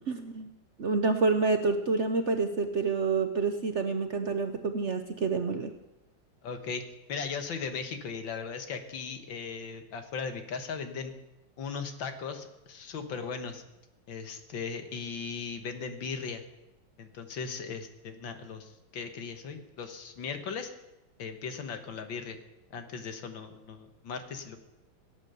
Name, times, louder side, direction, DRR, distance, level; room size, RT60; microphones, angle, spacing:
voice 1, 0.1-0.5 0.8-5.7, right 4 dB, 50° right, 7 dB, 0.9 m, -28 dB
voice 2, 6.4-6.8 7.1-11.1 11.6-13.6 14.1-16.4 17.0-20.7 21.2-22.4 22.7-24.6, left 5 dB, 80° left, 7 dB, 2.1 m, -38 dB
17.5 x 9.2 x 6.8 m, 0.94 s
omnidirectional pair, 2.0 m